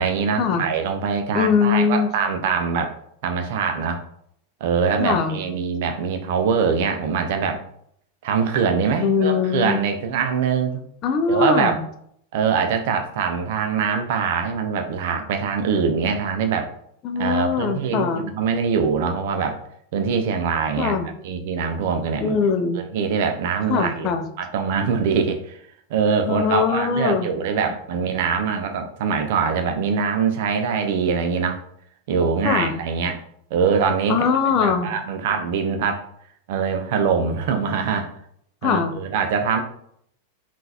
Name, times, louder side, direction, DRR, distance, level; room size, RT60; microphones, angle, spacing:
voice 1, 0.0-3.0 3.2-4.0 4.6-7.6 8.2-10.8 11.3-11.8 12.3-16.7 17.2-19.6 19.9-21.0 21.2-22.4 22.8-24.1 24.4-25.6 25.9-31.6 32.1-33.2 33.5-34.2 34.5-36.1 36.5-38.1 38.6-39.6, right 6 dB, 50° right, 5 dB, 0.4 m, -23 dB
voice 2, 1.3-2.1 5.0-5.4 9.0-9.8 11.0-11.9 17.0-18.2 20.8-21.1 22.2-22.8 23.7-24.3 26.2-27.3 32.4-32.7 34.1-34.9 38.6-38.9, left 6 dB, 35° left, 6 dB, 0.4 m, -21 dB
3.6 x 2.4 x 2.8 m, 0.69 s
figure-of-eight pair, 90°, 0 cm